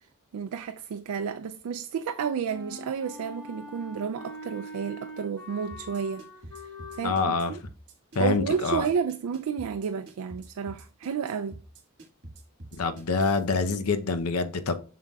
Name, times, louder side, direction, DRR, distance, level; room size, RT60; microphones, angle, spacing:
voice 1, 0.3-6.2 7.0-7.6 8.2-11.6, right 6 dB, 85° right, 0.3 m, -31 dB
Wind instrument woodwind instrument, 2.5-7.4, left 1 dB, 15° left, 2.7 m, -43 dB
sound 1, 5.7-13.4, right 1 dB, 50° right, 1.7 m, -46 dB
voice 2, 7.0-7.5 8.1-8.9 12.7-14.8, left 4 dB, 80° left, 0.7 m, -26 dB
7.3 x 5.7 x 2.3 m
head